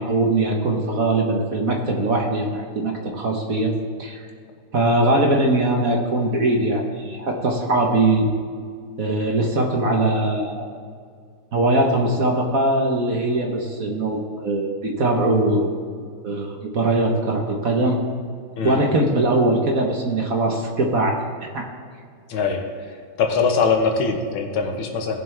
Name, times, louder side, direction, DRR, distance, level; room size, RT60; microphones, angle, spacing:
voice 1, 0.0-3.7 4.0-4.2 4.7-8.3 9.0-10.6 11.5-15.7 16.2-18.0 18.6-21.6, right 2 dB, 50° right, 1 dB, 1.3 m, -21 dB
voice 2, 22.3-22.7 23.2-25.2, left 5 dB, 80° left, 4 dB, 2.0 m, -22 dB
18.0 x 7.4 x 3.4 m, 2.1 s
omnidirectional pair, 2.3 m